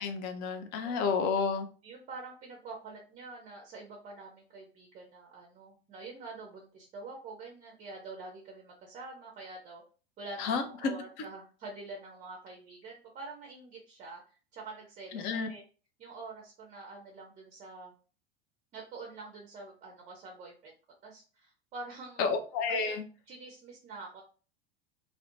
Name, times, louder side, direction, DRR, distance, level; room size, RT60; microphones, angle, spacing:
voice 1, 0.0-1.7 10.4-10.6 15.1-15.5 22.2-23.0, left 5 dB, 35° left, 7 dB, 0.4 m, -30 dB
voice 2, 1.8-9.8 10.2-14.2 14.5-15.6 16.0-17.9 18.7-20.7 21.0-22.3 22.7-23.0 23.3-24.2, right 3 dB, 25° right, 1 dB, 0.5 m, -46 dB
2.4 x 2.1 x 2.8 m, 0.37 s
figure-of-eight pair, 80°, 30 cm